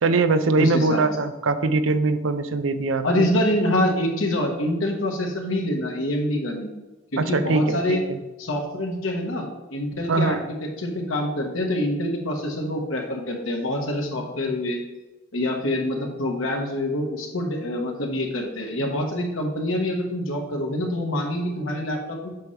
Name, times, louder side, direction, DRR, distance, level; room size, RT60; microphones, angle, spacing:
voice 1, 0.0-3.3 7.2-8.2 10.1-10.4, right 3 dB, 70° right, 11 dB, 0.5 m, -22 dB
voice 2, 0.6-1.0 3.0-6.7 7.1-8.0 8.4-14.8 15.3-22.3, left 1 dB, 90° left, 2 dB, 1.5 m, -26 dB
8.2 x 5.7 x 3.3 m, 1.1 s
head